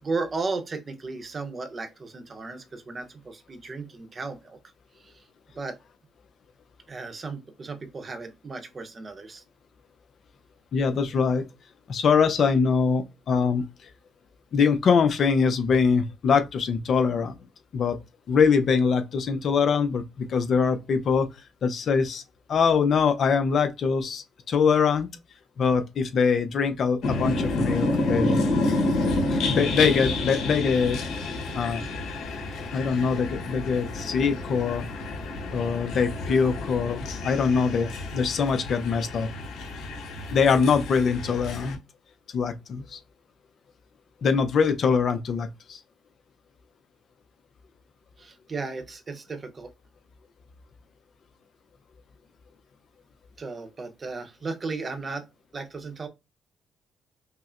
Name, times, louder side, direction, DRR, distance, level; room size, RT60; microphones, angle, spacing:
voice 1, 0.0-4.6 5.0-5.2 5.6-5.8 6.9-9.4 48.2-49.7 53.4-55.3 55.5-56.1, right 3 dB, 35° right, 0.8 m, -35 dB
voice 2, 10.7-11.5 11.9-13.6 14.5-17.3 17.7-18.0 18.3-21.3 21.6-22.2 22.5-25.1 25.6-28.4 29.3-31.0 31.5-31.8 32.7-34.8 35.5-39.3 40.3-41.8 42.3-43.0 44.2-45.8, left 5 dB, 60° left, 0.6 m, -23 dB
sound 1, 27.0-41.7, left 2 dB, 75° left, 1.1 m, -29 dB
5.5 x 2.0 x 2.5 m
cardioid pair, 90°, 0 cm